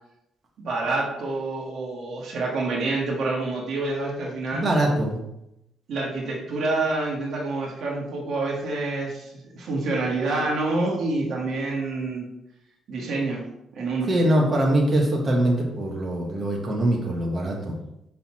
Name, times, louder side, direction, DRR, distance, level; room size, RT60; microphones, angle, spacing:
voice 1, 0.6-4.7 5.9-12.3 12.9-13.4 13.7-14.1, right 2 dB, 65° right, -2 dB, 1.6 m, -27 dB
voice 2, 4.6-5.2 14.1-17.7, right 1 dB, 35° right, -2 dB, 1.6 m, -22 dB
5.8 x 4.2 x 4.3 m, 0.83 s
cardioid pair, 90°, 0 cm